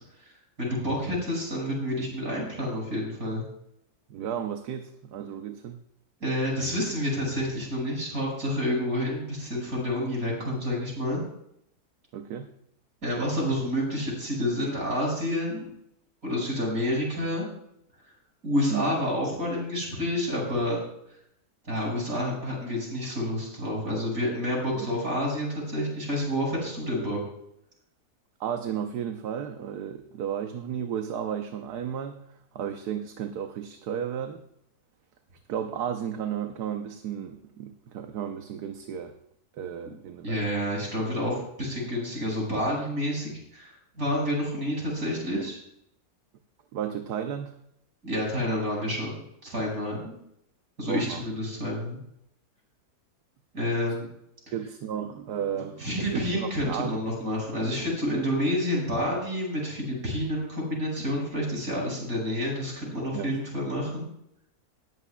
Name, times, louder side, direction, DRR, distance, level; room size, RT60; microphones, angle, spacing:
voice 1, 0.6-3.4 6.2-11.2 13.0-15.7 16.2-17.5 18.4-20.8 21.6-27.2 40.2-45.6 48.0-50.2 50.8-52.0 53.5-54.1 55.8-64.1, left 1 dB, 60° right, -2 dB, 6.2 m, -29 dB
voice 2, 4.1-5.8 12.1-12.5 18.7-18.9 24.7-24.9 28.4-34.4 35.5-39.2 39.5-40.6 45.3-45.5 46.7-47.6 50.9-51.2 54.5-57.0 63.1-63.4, right 8 dB, 80° right, 6 dB, 1.4 m, -33 dB
19.0 x 14.0 x 2.3 m, 0.75 s
omnidirectional pair, 1.7 m